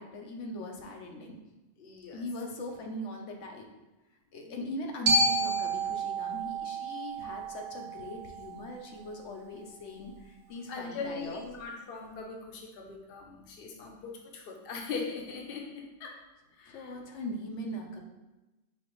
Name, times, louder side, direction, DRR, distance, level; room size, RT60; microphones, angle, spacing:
voice 1, 0.0-1.4 2.1-3.7 4.3-11.4 16.7-18.0, equal, 85° left, 1 dB, 1.0 m, -40 dB
voice 2, 1.8-2.2 4.4-4.6 10.7-16.2 16.5-16.9, left 4 dB, 60° left, 1 dB, 0.8 m, -40 dB
Glockenspiel, 5.1-9.2, right 2 dB, 75° right, 1.1 m, -30 dB
5.3 x 2.9 x 3.0 m, 1.1 s
omnidirectional pair, 1.2 m